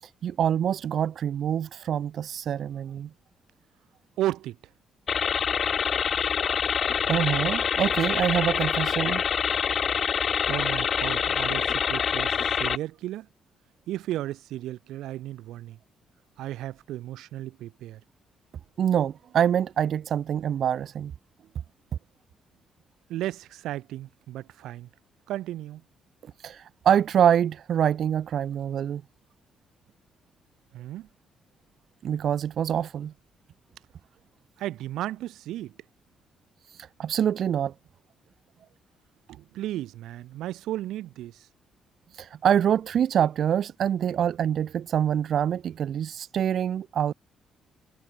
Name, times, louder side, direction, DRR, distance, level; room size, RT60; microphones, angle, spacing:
voice 1, 0.0-3.1 6.2-6.3 7.1-9.2 18.8-21.1 26.4-29.0 32.0-33.1 36.7-37.7 42.1-47.1, right 9 dB, 65° right, 1.3 m, -25 dB
voice 2, 4.2-4.6 10.5-13.3 13.9-15.8 16.4-18.0 23.1-24.9 25.3-25.8 30.7-31.1 34.6-35.8 39.3-41.5, right 14 dB, 85° right, 4.7 m, -34 dB
sound 1, 5.1-12.8, left 7 dB, 50° left, 0.5 m, -26 dB
cardioid pair, 90°, 0 cm